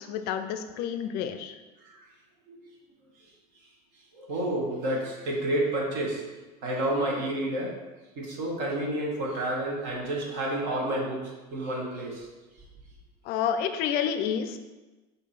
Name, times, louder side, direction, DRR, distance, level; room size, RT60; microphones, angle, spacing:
voice 1, 0.0-1.6 13.3-14.6, left 8 dB, 55° left, 8 dB, 0.5 m, -29 dB
voice 2, 4.1-6.2 6.6-7.8 8.2-12.3, right 1 dB, 60° right, -2 dB, 1.2 m, -30 dB
4.5 x 2.7 x 4.1 m, 1.2 s
hypercardioid pair, 100°, 20 cm